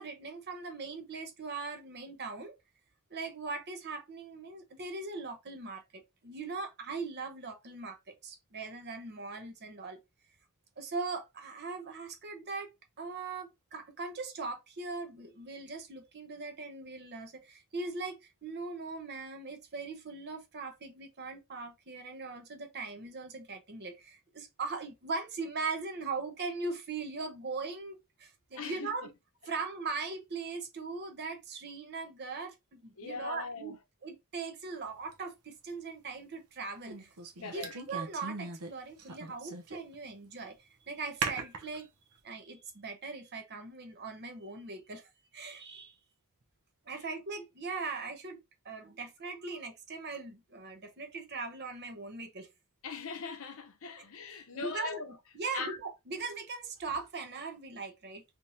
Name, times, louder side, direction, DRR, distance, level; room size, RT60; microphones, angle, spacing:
voice 1, 0.0-2.6 3.1-10.0 10.8-29.1 29.4-33.8 34.0-37.1 37.4-41.9 42.2-45.9 46.9-52.5 54.5-55.0 55.3-58.2, right 4 dB, 50° right, 0.9 m, -40 dB
voice 2, 28.5-29.1 33.0-33.8 37.4-37.7 46.9-47.0 52.8-55.1 55.5-55.8, left 4 dB, 65° left, 0.8 m, -40 dB
sound 1, 35.1-35.2 36.9-38.7 39.0-40.0 40.3-40.4 41.2-41.8, right 5 dB, 85° right, 0.8 m, -38 dB
3.5 x 3.0 x 2.7 m
head